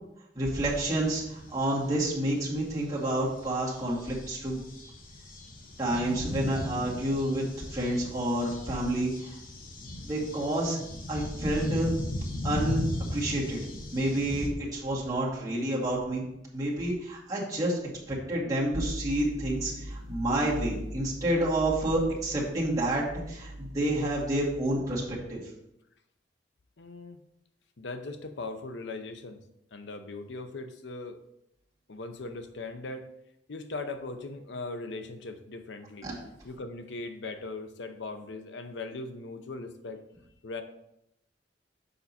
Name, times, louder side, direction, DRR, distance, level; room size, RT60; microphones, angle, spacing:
voice 1, 0.3-4.6 5.8-7.4 7.7-9.4 10.0-10.8 11.1-11.9 12.4-12.8 13.1-13.6 13.9-16.2 16.5-17.8 18.1-25.4 36.0-36.1, right 1 dB, 20° right, -7 dB, 2.2 m, -29 dB
sound 1, 0.5-14.5, left 1 dB, 50° left, 1.1 m, -37 dB
sound 2, 18.7-24.6, equal, 60° right, 1.0 m, -41 dB
voice 2, 26.8-27.2 27.8-29.4 29.7-31.2 31.9-33.1 33.5-36.1 36.4-40.0 40.4-40.6, left 3 dB, 70° left, 8 dB, 0.7 m, -39 dB
6.8 x 5.4 x 4.2 m, 0.82 s
head